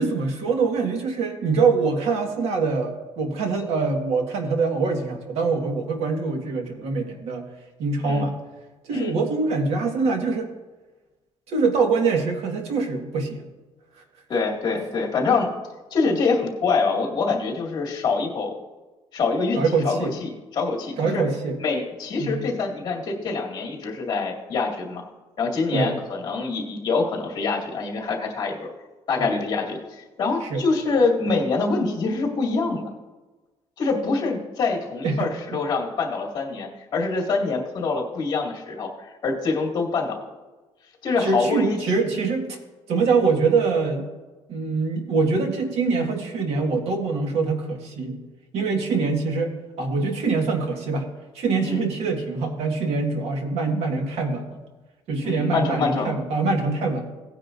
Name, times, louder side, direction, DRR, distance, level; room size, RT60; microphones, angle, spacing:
voice 1, 0.0-7.5 7.8-8.4 8.9-10.5 11.5-13.5 19.5-20.1 21.0-21.6 22.2-22.4 25.7-25.9 29.2-29.3 30.4-30.6 35.0-35.3 41.2-42.6 42.9-44.1 44.5-48.2 48.5-49.5 49.8-51.1 51.3-54.6 55.1-57.1, right 4 dB, 80° right, 3 dB, 1.7 m, -24 dB
voice 2, 14.3-15.5 15.9-18.5 19.1-21.2 21.6-25.0 25.4-28.7 29.1-32.9 33.8-40.2 41.0-41.8 48.9-49.1 51.6-51.9 55.2-56.1, left 4 dB, 40° left, -2 dB, 2.3 m, -25 dB
17.5 x 9.6 x 2.6 m, 1.2 s
cardioid pair, 180°, 11 cm